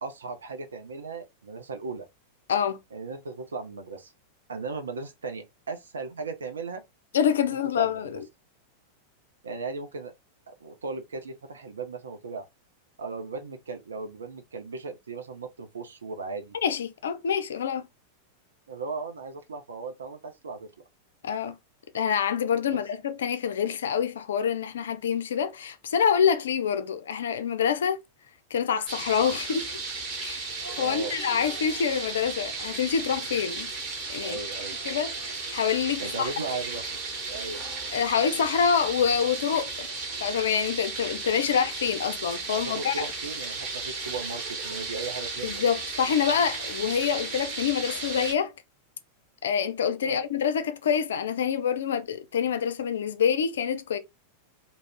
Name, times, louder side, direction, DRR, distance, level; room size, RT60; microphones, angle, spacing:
voice 1, 0.0-2.0 2.9-4.1 4.5-6.8 7.5-8.0 9.4-10.1 10.5-12.5 13.0-16.6 18.7-20.7 22.7-22.8 30.8-31.2 34.2-34.8 36.0-36.8 37.3-37.6 42.5-45.6 50.0-50.2, right 4 dB, 70° right, 0.5 m, -37 dB
voice 2, 2.5-2.8 7.1-8.2 16.6-17.9 21.2-21.6 21.9-28.0 28.5-29.7 30.2-30.5 30.8-33.7 34.1-34.4 34.8-36.3 37.9-39.9 40.2-43.1 45.4-48.5 49.4-54.0, left 7 dB, 65° left, 0.3 m, -26 dB
sound 1, 28.9-48.3, right 3 dB, 35° right, 1.1 m, -35 dB
2.4 x 2.0 x 3.5 m
figure-of-eight pair, 90°, 0 cm